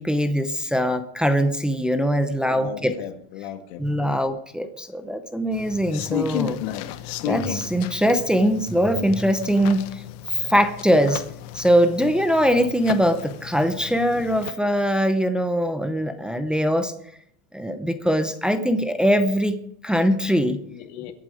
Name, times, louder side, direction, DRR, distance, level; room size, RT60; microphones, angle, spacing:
voice 1, 0.0-2.9 3.8-6.6 7.2-10.0 10.3-11.2 11.5-16.9 17.5-20.6, equal, 5° right, 7 dB, 0.6 m, -22 dB
voice 2, 2.4-4.2 20.7-21.1, left 10 dB, 85° left, 6 dB, 2.1 m, -38 dB
sound 1, 5.5-14.5, left 11 dB, 60° left, 1.0 m, -34 dB
22.5 x 8.7 x 4.9 m, 0.72 s
cardioid pair, 155°, 31 cm